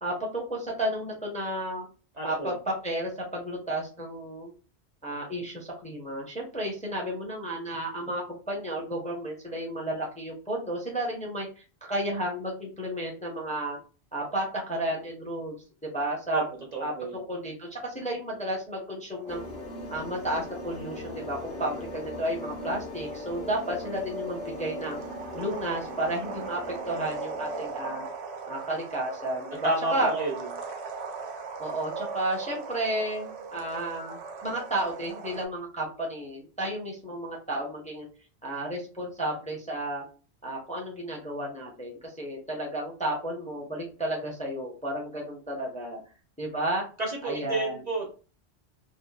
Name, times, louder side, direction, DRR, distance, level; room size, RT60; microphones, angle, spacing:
voice 1, 0.0-1.9 2.2-4.5 5.0-13.8 14.1-16.4 16.8-19.4 19.9-25.0 25.3-26.6 26.9-28.1 28.5-30.1 31.6-38.1 38.4-40.0 40.4-46.0 46.4-46.8 47.2-47.8, right 1 dB, 10° left, -2 dB, 0.5 m, -32 dB
voice 2, 2.2-2.5 16.3-16.4 16.7-17.1 29.5-30.3 47.0-48.1, right 2 dB, 45° right, 0 dB, 0.7 m, -30 dB
sound 1, 19.1-35.5, right 4 dB, 90° right, 0.9 m, -39 dB
sound 2, 19.3-28.1, left 2 dB, 70° left, 0.8 m, -41 dB
2.8 x 2.4 x 2.2 m, 0.36 s
omnidirectional pair, 1.1 m